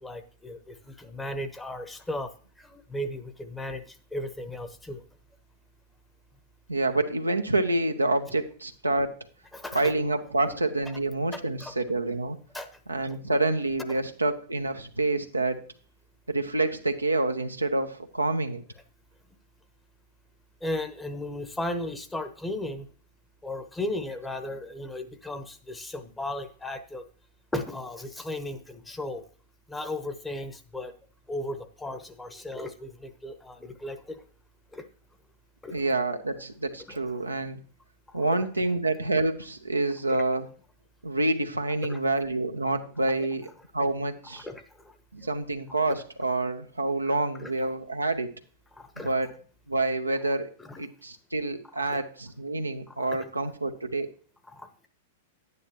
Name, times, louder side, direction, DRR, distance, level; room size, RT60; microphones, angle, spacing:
voice 1, 0.0-2.3 2.6-5.0 9.5-9.9 11.3-11.7 12.5-12.7 20.6-22.9 23.4-27.0 27.5-29.2 29.7-30.9 31.3-34.2 34.7-34.8 35.6-35.9 36.9-37.0 38.1-38.5 40.1-40.2 41.9-42.0 44.3-45.0 45.9-46.0 47.4-47.5 48.7-49.1 50.6-50.8 51.7-52.0 52.9-53.3 54.5-54.7, left 1 dB, 10° left, 8 dB, 0.9 m, -36 dB
voice 2, 6.7-9.2 9.7-12.4 12.9-15.6 16.3-18.6 35.7-37.6 38.1-40.5 41.0-43.5 43.7-44.5 45.1-48.3 49.0-49.3 49.7-50.5 50.8-54.1, right 2 dB, 90° right, 5 dB, 0.8 m, -27 dB
10.5 x 9.5 x 2.9 m, 0.43 s
figure-of-eight pair, 100°, 0 cm